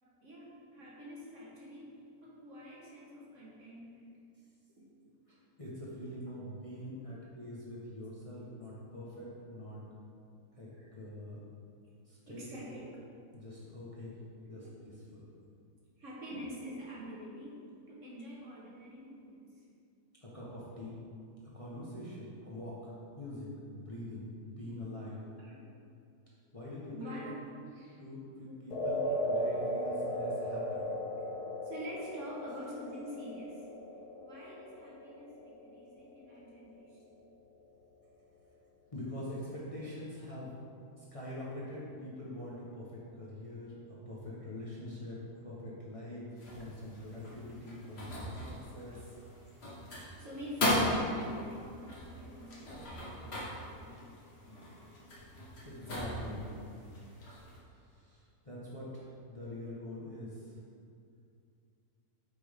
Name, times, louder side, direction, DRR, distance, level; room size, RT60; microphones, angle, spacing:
voice 1, 0.0-4.1 4.7-5.1 6.4-6.6 10.7-10.9 12.3-12.8 14.4-14.6 16.0-17.6 17.9-19.6 25.3-25.8 26.9-28.0 29.1-29.2 29.9-30.1 31.4-33.6 34.2-37.3 48.9-49.3 50.2-54.3, equal, 50° right, -5 dB, 1.6 m, -47 dB
voice 2, 5.3-9.8 10.5-11.4 12.0-12.4 13.3-14.2 14.4-15.2 20.2-21.0 21.5-25.2 26.3-27.2 28.0-30.8 36.3-36.4 38.9-40.5 41.0-46.2 46.5-49.1 54.4-54.6 55.6-56.5 57.5-60.6, left 1 dB, 20° left, -7 dB, 1.3 m, -44 dB
sound 1, 28.7-37.0, equal, 70° left, 1.5 m, -37 dB
sound 2, 46.4-57.6, left 1 dB, 40° left, 1.6 m, -38 dB
8.6 x 6.1 x 3.6 m, 2.4 s
omnidirectional pair, 1.7 m